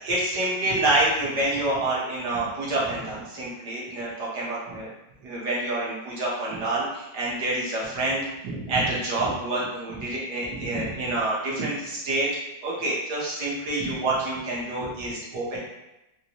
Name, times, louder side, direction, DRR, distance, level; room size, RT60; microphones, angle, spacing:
voice 1, 0.0-4.9 5.2-12.3 12.6-15.6, right 2 dB, 65° right, -5 dB, 1.6 m, -27 dB
4.3 x 2.1 x 2.9 m, 0.93 s
omnidirectional pair, 2.0 m